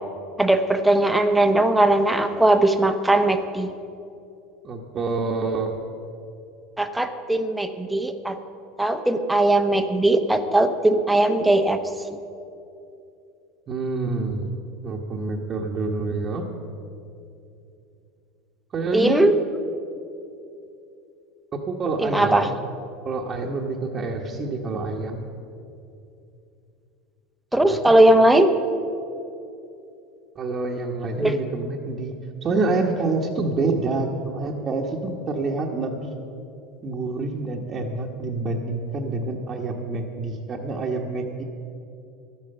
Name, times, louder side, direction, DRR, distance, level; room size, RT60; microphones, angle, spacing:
voice 1, 0.4-3.7 6.8-8.4 8.8-11.8 18.9-19.4 22.0-22.5 27.5-28.5 31.2-31.4, right 1 dB, 5° right, 7 dB, 0.8 m, -19 dB
voice 2, 4.6-5.8 13.7-14.5 14.8-16.4 18.7-19.3 21.5-22.5 23.0-25.3 27.6-27.7 30.3-32.1 32.4-36.1 36.8-41.4, right 3 dB, 35° right, -3 dB, 1.2 m, -27 dB
12.5 x 8.9 x 6.8 m, 2.7 s
hypercardioid pair, 90°, 0 cm